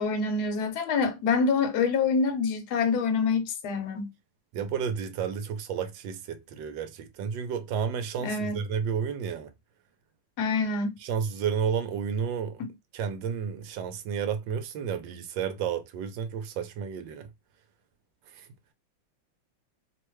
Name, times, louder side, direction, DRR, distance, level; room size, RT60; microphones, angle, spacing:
voice 1, 0.0-4.1 8.2-8.6 10.4-11.0, left 4 dB, 65° left, 1.2 m, -26 dB
voice 2, 4.5-9.5 11.0-12.6 12.9-17.3 18.3-18.5, right 7 dB, 80° right, 1.3 m, -31 dB
3.2 x 2.1 x 3.0 m
omnidirectional pair, 2.0 m